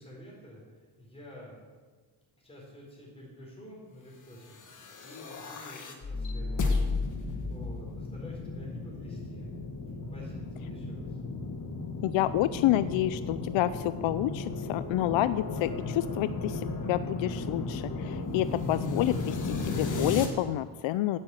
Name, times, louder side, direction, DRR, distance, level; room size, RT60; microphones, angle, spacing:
voice 1, 0.0-1.7 2.4-6.7 7.0-9.5 10.1-11.2, left 1 dB, 10° left, -4 dB, 4.1 m, -49 dB
sound 1, 4.5-20.3, left 3 dB, 40° left, 1.6 m, -34 dB
voice 2, 12.0-21.2, left 13 dB, 70° left, 14 dB, 0.5 m, -29 dB
9.8 x 8.7 x 8.2 m, 1.4 s
cardioid pair, 135°, 49 cm